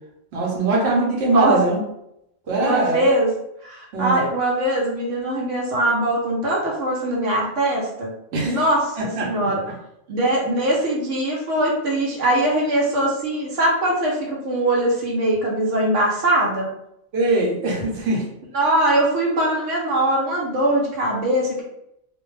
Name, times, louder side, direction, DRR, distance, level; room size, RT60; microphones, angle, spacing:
voice 1, 0.3-1.8 2.5-3.1 3.9-4.2 8.3-8.6 9.0-9.3 17.1-18.2, right 2 dB, 60° right, -3 dB, 1.0 m, -21 dB
voice 2, 1.2-1.6 2.6-3.3 3.6-8.1 8.4-9.0 9.2-9.6 10.1-16.7 18.5-21.6, right 1 dB, 85° right, -3 dB, 1.1 m, -21 dB
2.5 x 2.1 x 3.1 m, 0.80 s
omnidirectional pair, 1.2 m